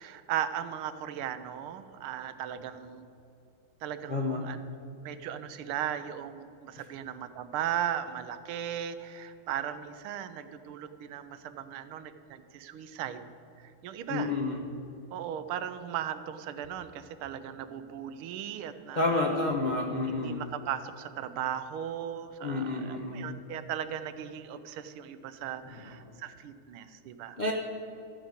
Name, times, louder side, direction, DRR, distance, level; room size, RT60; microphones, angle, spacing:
voice 1, 0.0-3.1 3.8-13.3 13.6-14.3 15.1-19.2 20.1-27.4, right 10 dB, 85° right, 11 dB, 1.5 m, -37 dB
voice 2, 4.1-4.5 14.1-14.6 18.9-20.4 22.4-23.4 26.1-26.2 27.4-27.5, left 2 dB, 55° left, -1 dB, 0.5 m, -30 dB
13.0 x 5.0 x 8.0 m, 2.7 s
omnidirectional pair, 2.3 m